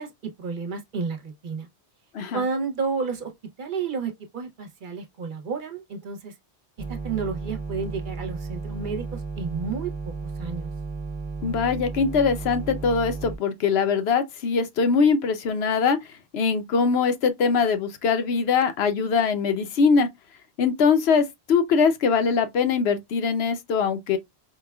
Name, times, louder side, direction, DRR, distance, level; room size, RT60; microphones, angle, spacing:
voice 1, 0.0-1.7 2.3-3.3 3.6-6.3 6.9-10.1 10.4-10.7, right 5 dB, 55° right, 0.8 m, -31 dB
sound 1, 6.8-13.4, right 4 dB, 30° right, 0.9 m, -34 dB
voice 2, 11.4-16.0 16.3-20.1 20.6-24.2, left 5 dB, 75° left, 0.9 m, -22 dB
4.8 x 2.2 x 2.2 m
omnidirectional pair, 1.1 m